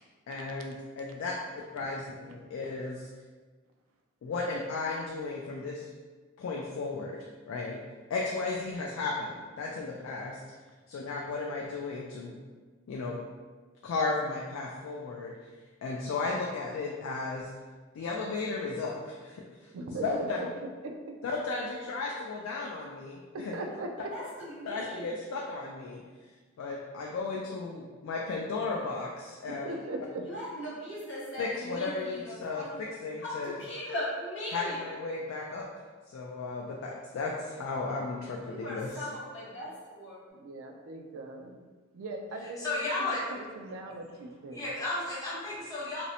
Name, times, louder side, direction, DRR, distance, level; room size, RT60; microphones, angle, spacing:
voice 1, 0.3-1.3 1.7-3.1 4.2-5.9 6.4-7.2 7.5-7.8 8.1-10.4 10.9-12.4 12.9-13.2 13.8-15.3 15.8-17.5 17.9-19.7 20.0-20.4 21.2-23.6 24.6-26.0 26.6-29.7 31.4-33.7 34.5-35.7 36.1-39.1, left 3 dB, 80° left, -2 dB, 0.3 m, -35 dB
voice 2, 19.7-20.5 20.8-21.2 23.3-24.1 29.5-30.2 40.3-41.6 41.9-42.8 43.3-44.6, right 2 dB, 85° right, 3 dB, 0.3 m, -39 dB
sound 1, 24.1-25.2 30.2-32.8 33.2-35.0 38.4-40.2, equal, 65° left, 0.7 m, -39 dB
voice 3, 42.6-43.2 44.5-46.0, left 2 dB, 15° left, -9 dB, 0.6 m, -33 dB
2.5 x 2.0 x 2.7 m, 1.4 s
head